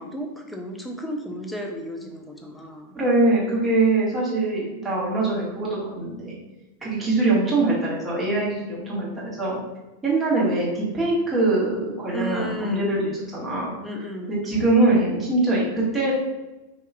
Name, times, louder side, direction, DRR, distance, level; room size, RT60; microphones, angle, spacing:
voice 1, 0.0-2.9 12.1-12.9 13.8-14.3, equal, 5° left, 2 dB, 0.5 m, -33 dB
voice 2, 2.9-6.4 6.8-9.6 10.0-13.7 14.3-16.1, right 2 dB, 15° right, -6 dB, 1.4 m, -23 dB
4.5 x 2.9 x 2.2 m, 1.0 s
figure-of-eight pair, 90°, 0 cm